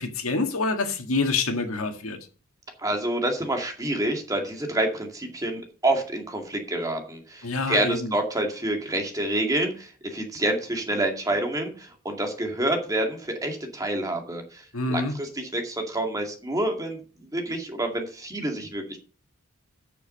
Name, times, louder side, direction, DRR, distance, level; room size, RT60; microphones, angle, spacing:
voice 1, 0.0-2.2 7.4-8.1 14.7-15.1, left 3 dB, 80° left, 1.8 m, -26 dB
voice 2, 2.8-19.0, right 1 dB, 15° right, 2.1 m, -28 dB
8.3 x 6.7 x 6.5 m
head